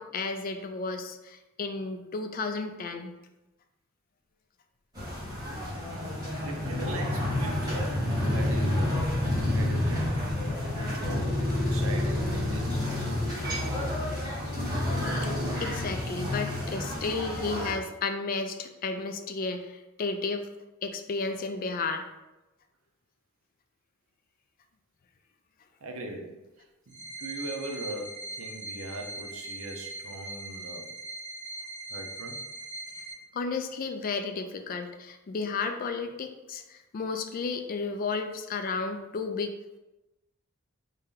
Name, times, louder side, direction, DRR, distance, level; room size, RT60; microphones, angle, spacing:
voice 1, 0.0-3.2 15.2-20.5 20.8-22.0 33.3-39.5, left 4 dB, 40° left, 7 dB, 0.3 m, -33 dB
sound 1, 4.9-17.7, left 1 dB, 20° right, 1.2 m, -29 dB
voice 2, 6.4-9.0 9.5-10.2 10.6-14.0 25.8-30.9 31.9-32.5, right 2 dB, 80° right, 2 dB, 0.6 m, -41 dB
sound 2, 26.9-33.1, right 2 dB, 40° right, 1.0 m, -40 dB
3.3 x 2.8 x 3.7 m, 1.0 s
head